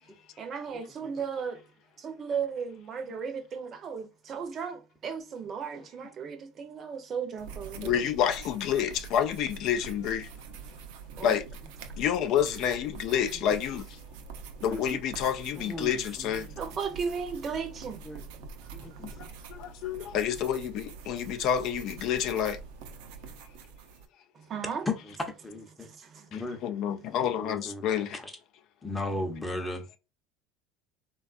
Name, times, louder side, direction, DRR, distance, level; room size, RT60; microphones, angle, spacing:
voice 1, 0.4-1.6 2.0-8.1 11.1-11.4 16.6-18.0 18.9-19.3 24.3-24.9 25.8-26.3 26.9-27.1, right 6 dB, 40° right, 0.6 m, -36 dB
sound 1, 7.4-24.1, right 5 dB, 80° right, 0.5 m, -45 dB
voice 2, 7.7-10.3 11.2-11.5 12.0-13.9 14.6-16.5 19.2-22.6 26.3-28.2, left 9 dB, 60° left, 0.3 m, -29 dB
voice 3, 15.6-16.5 18.0-18.2 18.7-19.0 24.9-25.2 25.4-25.9 26.3-26.6 27.3-28.3 28.8-30.0, left 2 dB, 10° left, 0.7 m, -36 dB
3.4 x 2.3 x 2.4 m
supercardioid pair, 120°, 0 cm